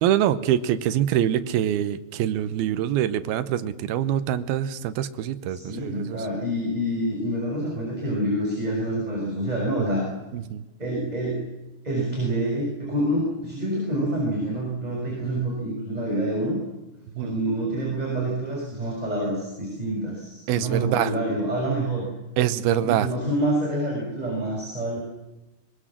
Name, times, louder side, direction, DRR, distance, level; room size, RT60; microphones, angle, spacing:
voice 1, 0.0-6.2 10.3-10.6 17.2-17.3 20.5-21.1 22.4-23.1, right 11 dB, 85° right, 12 dB, 3.0 m, -24 dB
voice 2, 5.5-10.1 10.8-11.4 11.8-16.6 17.2-22.1 22.8-25.0, right 1 dB, 10° right, -3 dB, 6.3 m, -27 dB
23.5 x 23.5 x 7.5 m, 1.0 s
omnidirectional pair, 4.3 m